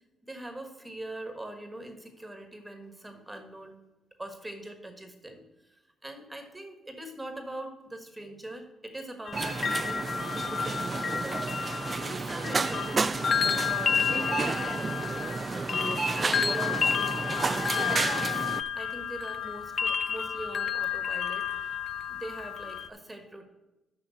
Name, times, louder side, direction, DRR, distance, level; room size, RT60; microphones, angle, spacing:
voice 1, 0.2-3.8 4.2-5.4 5.7-10.0 10.3-11.5 12.0-15.3 15.8-16.8 17.7-21.8 22.1-23.5, right 1 dB, 15° right, 5 dB, 1.4 m, -42 dB
sound 1, 9.3-22.9, left 7 dB, 50° left, 0.4 m, -31 dB
sound 2, 9.3-18.6, right 4 dB, 30° right, 0.3 m, -31 dB
6.5 x 5.7 x 6.4 m, 1.0 s
cardioid pair, 90°, 0 cm